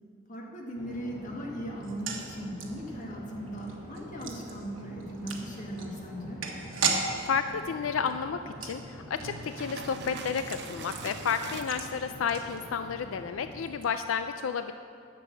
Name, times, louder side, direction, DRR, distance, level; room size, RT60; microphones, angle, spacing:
voice 1, 0.3-6.4, equal, 40° left, -1 dB, 1.7 m, -38 dB
sound 1, 0.7-13.7, equal, 20° left, 3.2 m, -46 dB
sound 2, 1.8-13.0 13.3-13.4 13.7-13.9, right 5 dB, 75° right, 1.3 m, -38 dB
voice 2, 7.3-14.7, left 6 dB, 85° left, 9 dB, 0.4 m, -31 dB
sound 3, 9.2-11.6, right 4 dB, 60° right, 0.7 m, -42 dB
11.0 x 6.9 x 7.5 m, 2.5 s
head